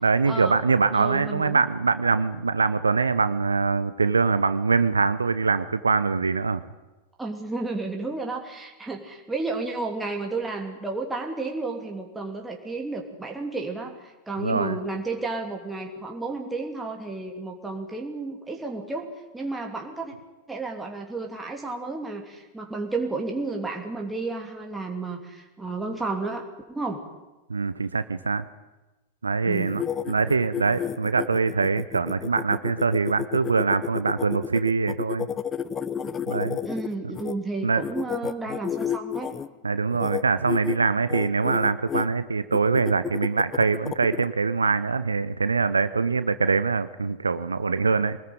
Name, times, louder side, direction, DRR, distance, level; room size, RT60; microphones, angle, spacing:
voice 1, 0.0-6.6 14.4-14.8 27.5-28.4 29.2-35.3 36.3-36.6 37.6-37.8 39.6-48.2, right 4 dB, 75° right, 13 dB, 0.9 m, -23 dB
voice 2, 0.9-1.6 7.2-20.1 20.5-27.0 29.4-29.8 36.6-39.3, right 3 dB, 10° right, 1 dB, 3.0 m, -32 dB
sound 1, 29.5-37.3 37.8-39.5 39.9-40.2 40.5-40.8 41.1-42.1 42.5-44.3, left 8 dB, 25° left, 0.9 m, -31 dB
24.0 x 20.0 x 9.3 m, 1.1 s
figure-of-eight pair, 90°, 0 cm